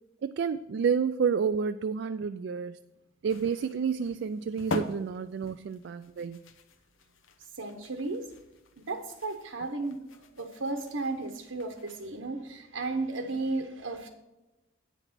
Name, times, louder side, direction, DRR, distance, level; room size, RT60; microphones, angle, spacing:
voice 1, 0.2-2.8 3.2-6.4, right 6 dB, 60° right, 10 dB, 0.3 m, -30 dB
sound 1, 3.3-12.2, left 2 dB, 85° left, 0.8 m, -43 dB
voice 2, 7.5-8.3 8.8-10.0 10.4-14.1, right 3 dB, 90° right, 3 dB, 1.0 m, -34 dB
9.1 x 5.8 x 6.0 m, 1.0 s
head